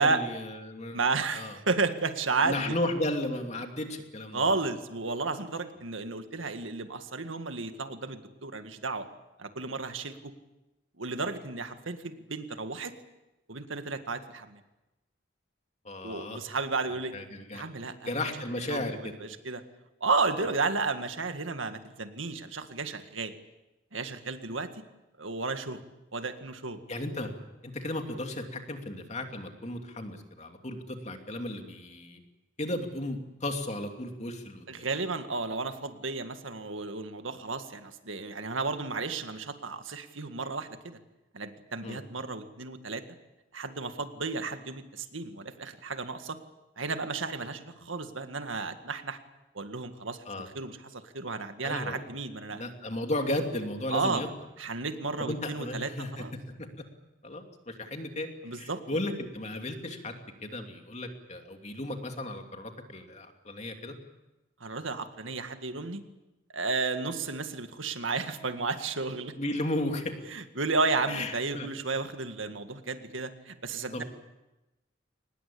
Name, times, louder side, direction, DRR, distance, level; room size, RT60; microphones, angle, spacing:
voice 1, 0.0-1.0 1.3-1.6 2.4-4.5 15.8-16.4 16.9-17.6 18.0-19.1 20.4-20.5 26.9-27.3 27.6-32.2 32.6-34.9 41.8-42.0 50.3-50.5 51.6-52.1 52.5-54.3 55.2-56.2 57.2-64.0 69.4-70.1 71.1-71.7 73.9-74.0, left 1 dB, 35° left, 4 dB, 2.8 m, -34 dB
voice 2, 0.9-2.8 4.3-9.1 9.4-10.3 11.0-12.9 13.5-14.6 16.0-17.1 17.5-18.1 18.7-18.8 19.2-19.6 20.0-23.3 23.9-24.8 25.2-25.8 26.1-26.8 34.7-41.0 41.3-43.0 43.5-46.4 46.8-49.2 49.6-50.2 50.5-52.6 53.9-54.2 54.6-56.3 58.4-58.8 64.6-66.0 66.5-69.3 70.3-74.0, right 3 dB, 85° right, 8 dB, 1.9 m, -32 dB
24.0 x 20.0 x 8.6 m, 1.0 s
head